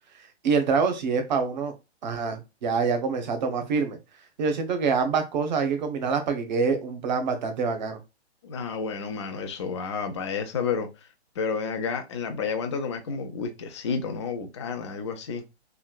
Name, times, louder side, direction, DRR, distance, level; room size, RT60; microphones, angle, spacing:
voice 1, 0.4-1.7 2.0-4.0 4.4-8.0, right 5 dB, 40° right, 0.8 m, -26 dB
voice 2, 8.4-11.1 11.4-15.4, left 5 dB, 25° left, 0.4 m, -31 dB
3.2 x 2.7 x 2.2 m
figure-of-eight pair, 125°, 34 cm